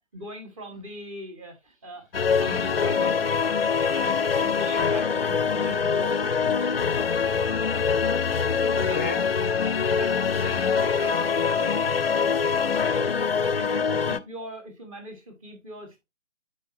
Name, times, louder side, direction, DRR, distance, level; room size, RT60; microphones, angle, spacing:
voice 1, 0.1-3.1 3.9-6.3 8.6-9.1 9.4-12.0 13.3-16.0, right 1 dB, 25° right, 1.6 m, -40 dB
sound 1, 2.1-14.2, left 6 dB, 50° left, 0.6 m, -24 dB
voice 2, 7.7-8.1 8.8-9.3 11.5-11.8, left 4 dB, 10° left, 0.6 m, -37 dB
10.5 x 4.4 x 2.6 m
figure-of-eight pair, 145°, 37 cm